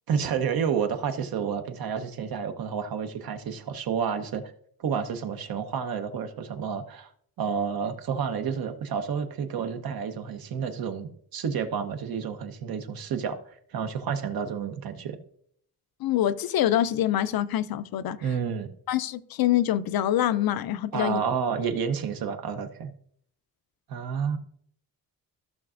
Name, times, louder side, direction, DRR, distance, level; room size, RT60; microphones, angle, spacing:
voice 1, 0.1-4.4 4.8-7.1 7.4-15.2 18.2-18.7 20.9-22.9 23.9-24.4, right 7 dB, 75° right, 7 dB, 1.0 m, -30 dB
voice 2, 16.0-18.2 18.9-21.2, left 12 dB, 75° left, 14 dB, 0.5 m, -25 dB
14.5 x 6.0 x 2.5 m, 0.65 s
cardioid pair, 115°, 36 cm